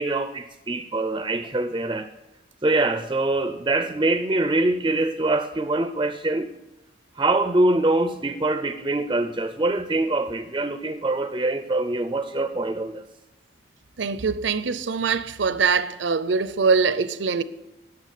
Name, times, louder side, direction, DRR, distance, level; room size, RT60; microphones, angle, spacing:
voice 1, 0.0-2.1 2.6-6.5 7.2-13.1, right 2 dB, 20° right, 0.5 m, -24 dB
voice 2, 14.0-17.4, right 5 dB, 70° right, 0.6 m, -23 dB
10.5 x 7.0 x 8.3 m
head